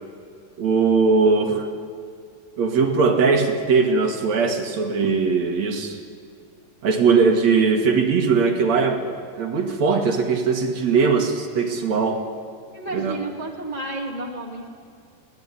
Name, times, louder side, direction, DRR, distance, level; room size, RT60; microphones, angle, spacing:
voice 1, 0.6-1.7 2.6-6.0 6.8-9.0 9.4-12.2 12.9-13.2, right 4 dB, 55° right, 4 dB, 2.9 m, -20 dB
voice 2, 12.7-14.7, right 2 dB, 15° left, 0 dB, 1.6 m, -31 dB
23.5 x 18.0 x 9.8 m, 2.2 s
omnidirectional pair, 3.9 m